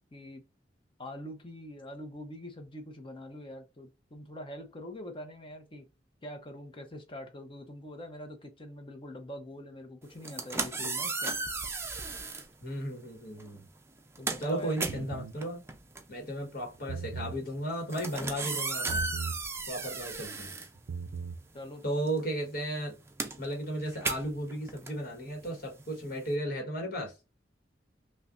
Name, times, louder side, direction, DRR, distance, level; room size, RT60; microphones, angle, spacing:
voice 1, 0.1-0.4 1.0-5.9 6.2-11.3 14.2-14.8 21.5-21.8, left 1 dB, 30° left, 0.8 m, -44 dB
sound 1, 10.1-12.5 13.4-13.6 13.9-21.4 21.7-26.3, right 3 dB, 15° right, 0.5 m, -36 dB
voice 2, 12.6-13.7 14.4-15.6 16.1-19.0 19.7-20.5 21.8-22.9 23.4-27.1, right 1 dB, 55° left, 1.3 m, -35 dB
sound 2, 14.9-15.4 16.7-17.4 18.9-19.4 20.7-21.4, right 5 dB, 70° right, 0.4 m, -37 dB
5.5 x 2.2 x 2.5 m
head